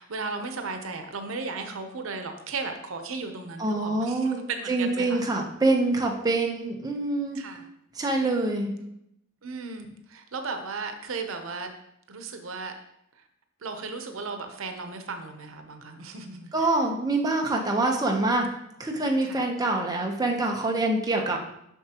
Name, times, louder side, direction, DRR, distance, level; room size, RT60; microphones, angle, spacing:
voice 1, 0.0-5.3 7.3-7.7 8.8-8.9 9.4-11.7 12.1-12.7 13.2-13.3 13.6-16.7 19.2-19.4, right 4 dB, 90° right, 6 dB, 0.8 m, -35 dB
voice 2, 3.6-4.4 4.7-7.4 8.0-8.7 16.5-18.5 18.8-21.4, right 2 dB, 20° right, 1 dB, 0.8 m, -25 dB
7.2 x 5.9 x 2.9 m, 0.77 s
head